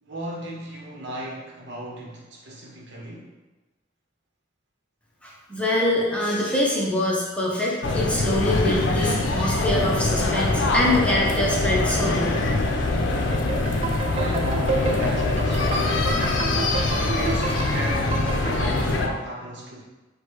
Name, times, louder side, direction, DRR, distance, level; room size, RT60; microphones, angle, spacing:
voice 1, 0.0-3.3 14.1-16.5 17.0-19.8, right 1 dB, 65° right, -3 dB, 0.9 m, -35 dB
voice 2, 5.2-12.4, left 1 dB, 5° left, -4 dB, 0.7 m, -24 dB
sound 1, 7.8-19.1, left 2 dB, 70° left, 0.6 m, -23 dB
sound 2, 13.3-18.8, right 4 dB, 35° right, 0.3 m, -31 dB
4.9 x 2.2 x 4.5 m, 1.2 s
head